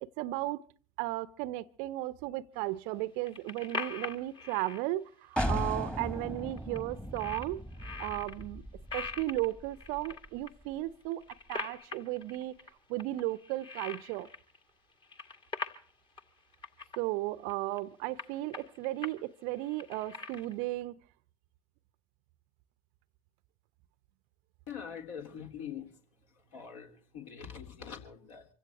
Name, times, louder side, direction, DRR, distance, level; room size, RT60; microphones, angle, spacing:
voice 1, 0.0-0.6 1.0-7.6 8.0-8.6 8.9-11.2 11.5-12.6 12.9-14.3 17.0-21.0, right 17 dB, 45° right, 0.8 m, -35 dB
sound 1, 3.0-4.8 5.6-5.7 5.9-6.0 6.4-6.8 7.2-8.4 8.9-10.5 11.0-12.7 13.0-14.6 14.9-15.9 16.2-16.3 16.5-17.0 17.5-17.8 18.2-19.2 19.5-20.7, left 4 dB, 25° left, 1.9 m, -42 dB
sound 2, 5.4-10.9, equal, 5° left, 1.7 m, -38 dB
voice 2, 24.7-25.9 26.5-28.5, left 7 dB, 55° left, 3.7 m, -43 dB
25.5 x 16.5 x 3.0 m
figure-of-eight pair, 85°, 20 cm